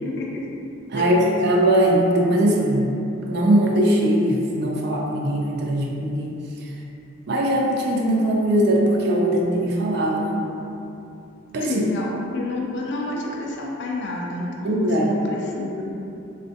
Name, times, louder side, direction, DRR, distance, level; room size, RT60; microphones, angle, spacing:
voice 1, 0.0-0.4 1.0-1.3 11.6-15.8, left 2 dB, 65° left, -2 dB, 0.4 m, -29 dB
voice 2, 0.9-2.9 3.3-6.3 6.6-6.7 7.3-10.5 11.5-11.8 14.6-15.2, right 1 dB, 60° right, -1 dB, 0.4 m, -20 dB
3.2 x 2.5 x 2.6 m, 2.8 s
head